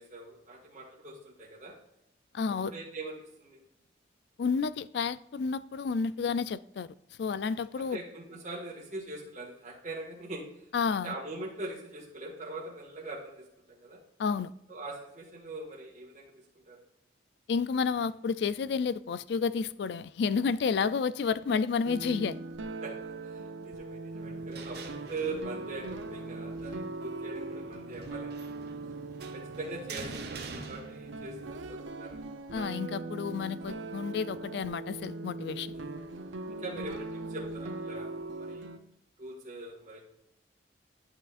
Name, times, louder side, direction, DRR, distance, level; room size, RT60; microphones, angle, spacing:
voice 1, 0.0-1.8 2.6-3.6 7.5-10.5 11.0-14.0 14.7-16.3 16.7-16.8 22.8-28.5 29.3-32.3 35.7-36.0 36.5-38.7 39.2-40.0, right 2 dB, 40° right, 1.7 m, -42 dB
voice 2, 2.3-2.7 4.4-6.9 7.2-8.0 10.7-11.1 14.2-14.5 17.5-22.4 32.5-35.7, left 5 dB, 60° left, 0.3 m, -30 dB
sound 1, 21.8-38.8, right 3 dB, 85° right, 0.6 m, -40 dB
sound 2, 24.2-31.5, right 3 dB, 60° right, 0.9 m, -46 dB
11.0 x 5.8 x 2.4 m
head